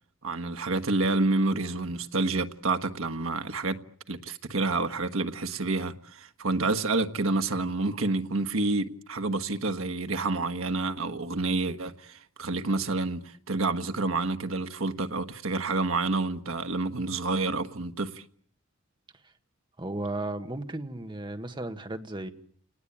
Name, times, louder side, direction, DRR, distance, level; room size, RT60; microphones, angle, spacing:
voice 1, 0.2-3.8 4.1-18.2, right 3 dB, 80° right, 1.4 m, -28 dB
voice 2, 19.8-22.3, right 2 dB, 25° right, 1.6 m, -34 dB
29.5 x 19.0 x 8.8 m
head